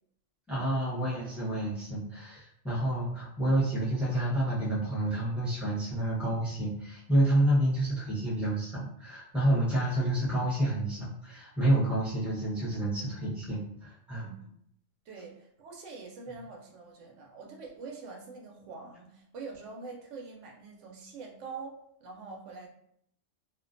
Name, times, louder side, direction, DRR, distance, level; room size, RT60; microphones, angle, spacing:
voice 1, 0.5-14.2, right 1 dB, ahead, -7 dB, 0.7 m, -29 dB
voice 2, 14.2-14.5 15.1-22.7, right 4 dB, 80° right, 0 dB, 0.9 m, -45 dB
2.4 x 2.2 x 2.5 m, 0.70 s
omnidirectional pair, 1.3 m